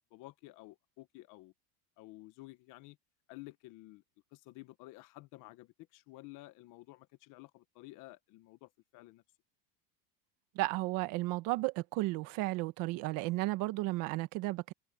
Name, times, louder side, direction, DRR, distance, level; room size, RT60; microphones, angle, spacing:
voice 1, 0.0-1.5 2.0-3.0 3.3-4.0 4.3-9.2, left 19 dB, 40° left, 1.1 m, -52 dB
voice 2, 10.5-14.7, right 20 dB, 45° right, 1.3 m, -33 dB
supercardioid pair, 160°, 46 cm